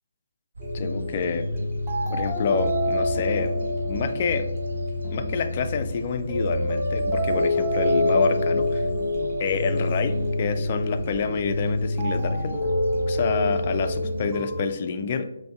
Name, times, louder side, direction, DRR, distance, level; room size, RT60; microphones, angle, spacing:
sound 1, 0.5-14.3, right 2 dB, 60° right, 0.6 m, -38 dB
sound 2, 0.6-14.6, left 1 dB, 10° right, 1.0 m, -26 dB
voice 1, 0.7-1.5 2.1-3.5 3.9-4.5 5.1-8.9 9.4-12.5 13.1-15.3, left 5 dB, 35° left, 8 dB, 0.4 m, -27 dB
5.1 x 2.7 x 3.3 m, 0.84 s
figure-of-eight pair, 145°, 0 cm